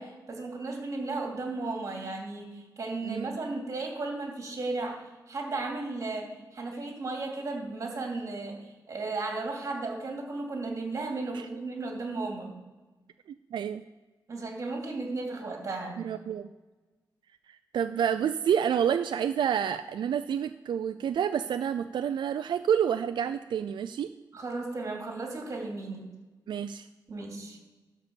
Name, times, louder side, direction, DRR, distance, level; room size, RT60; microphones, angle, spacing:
voice 1, 0.0-12.5 14.3-16.0 24.3-26.1 27.1-27.6, right 3 dB, 40° right, 0 dB, 2.7 m, -35 dB
voice 2, 13.5-13.8 16.0-16.5 17.5-24.1 26.5-26.9, right 8 dB, 90° right, 9 dB, 0.4 m, -29 dB
12.0 x 4.2 x 6.9 m, 1.2 s
wide cardioid pair, 175°, 8 cm